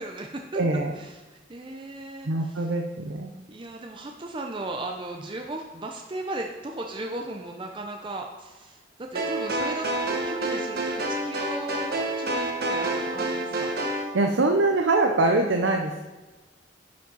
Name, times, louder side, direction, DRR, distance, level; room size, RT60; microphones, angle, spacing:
voice 1, 0.0-0.6 0.9-2.7 3.5-13.7, right 2 dB, 25° right, 2 dB, 0.6 m, -36 dB
voice 2, 0.6-0.9 2.3-3.3 14.1-16.0, right 2 dB, 80° right, 3 dB, 0.7 m, -23 dB
sound 1, 9.1-14.1, right 1 dB, 55° right, 1.2 m, -28 dB
10.5 x 5.2 x 5.3 m, 1.2 s
head